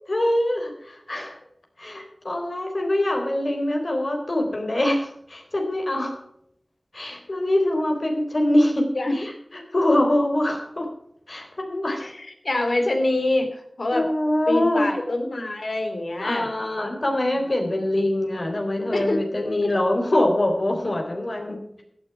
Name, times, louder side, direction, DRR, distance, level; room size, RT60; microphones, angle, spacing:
voice 1, 0.1-1.4 1.8-6.2 6.9-8.9 9.7-10.9 11.3-12.1 13.9-15.0 16.2-21.8, left 1 dB, 60° left, 3 dB, 3.7 m, -24 dB
voice 2, 12.0-14.1 14.5-16.5 18.9-19.3 19.6-19.7, left 2 dB, 80° left, 5 dB, 2.7 m, -25 dB
15.5 x 9.9 x 4.8 m, 0.74 s
wide cardioid pair, 50°, 0 cm